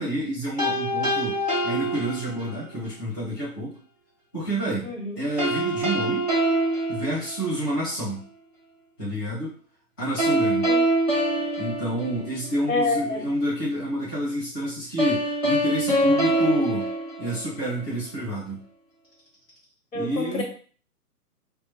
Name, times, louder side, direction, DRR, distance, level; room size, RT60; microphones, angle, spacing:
voice 1, 0.0-3.8 4.3-6.3 6.9-8.2 9.0-9.5 10.0-10.7 11.6-16.9 17.2-18.6 19.9-20.4, equal, 15° left, -10 dB, 0.6 m, -28 dB
sound 1, 0.6-2.7 5.4-7.8 10.2-12.7 15.0-17.8, right 1 dB, 30° right, 0.4 m, -25 dB
voice 2, 4.8-5.2 10.7-10.8 12.7-13.2 19.9-20.4, left 3 dB, 55° left, 1 dB, 1.1 m, -27 dB
3.1 x 2.1 x 3.3 m, 0.42 s
figure-of-eight pair, 135°, 47 cm